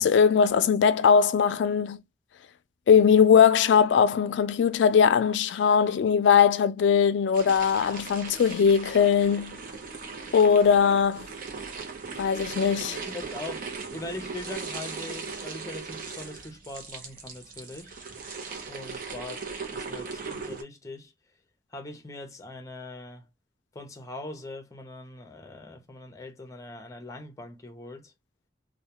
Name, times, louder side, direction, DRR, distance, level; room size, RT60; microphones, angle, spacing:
voice 1, 0.0-2.0 2.9-9.6 10.3-11.2 12.2-13.0, left 7 dB, 85° left, 0.3 m, -20 dB
sound 1, 7.3-20.6, right 4 dB, 50° right, 0.6 m, -38 dB
voice 2, 13.1-17.9 18.7-21.1 21.7-23.3 23.7-28.1, left 2 dB, 20° left, 0.6 m, -41 dB
2.2 x 2.1 x 2.9 m
head